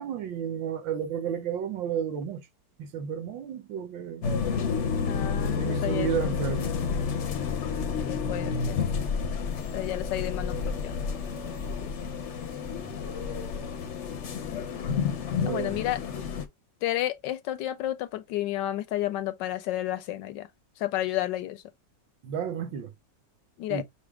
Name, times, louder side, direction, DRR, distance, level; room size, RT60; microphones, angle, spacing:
voice 1, 0.0-2.4 2.8-4.3 5.4-6.9 9.3-9.4 12.6-12.9 15.4-15.8 22.2-22.9 23.7-23.8, right 8 dB, 90° right, 1.6 m, -32 dB
sound 1, 4.2-16.4, left 6 dB, 55° left, 0.8 m, -30 dB
voice 2, 5.1-6.3 8.1-8.8 9.7-11.0 11.8-11.9 14.4-15.1 15.5-16.0 16.8-20.5 20.8-21.6 23.6-23.8, left 14 dB, 80° left, 1.3 m, -31 dB
5.9 x 2.1 x 3.5 m
omnidirectional pair, 2.0 m